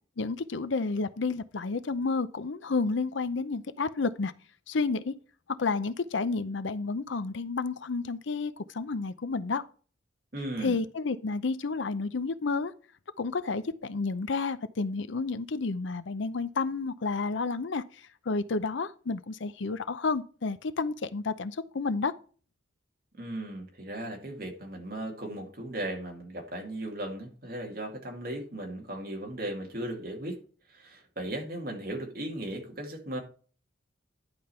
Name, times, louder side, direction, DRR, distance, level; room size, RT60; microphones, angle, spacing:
voice 1, 0.2-4.3 4.7-5.1 5.5-9.6 10.6-12.7 13.2-22.1, left 4 dB, 75° left, 0.6 m, -31 dB
voice 2, 10.3-10.8 23.1-30.4 30.7-33.2, right 1 dB, 50° right, 2.4 m, -37 dB
10.5 x 5.2 x 4.4 m
head